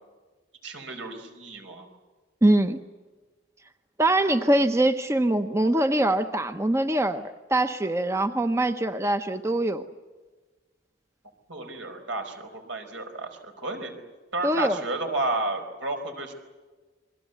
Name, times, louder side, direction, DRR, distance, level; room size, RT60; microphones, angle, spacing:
voice 1, 0.6-1.9 11.5-13.9 14.3-16.3, right 2 dB, 80° right, 5 dB, 4.9 m, -32 dB
voice 2, 2.4-2.8 4.0-9.8 14.4-14.8, right 1 dB, 15° right, 9 dB, 0.8 m, -23 dB
29.0 x 22.5 x 8.1 m, 1.3 s
head